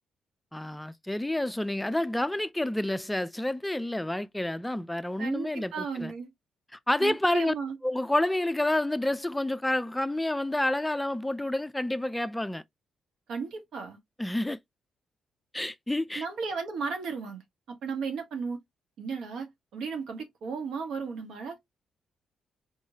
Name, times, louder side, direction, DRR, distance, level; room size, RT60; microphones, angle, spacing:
voice 1, 0.5-6.1 6.9-7.5 7.8-12.6 14.2-14.6 15.5-16.3, left 1 dB, 10° left, 0.3 m, -29 dB
voice 2, 5.2-6.3 7.0-7.8 13.3-14.0 16.1-17.4 17.7-18.6 19.0-21.6, right 5 dB, 75° right, 1.5 m, -35 dB
4.5 x 3.1 x 2.7 m
cardioid pair, 75°, 0 cm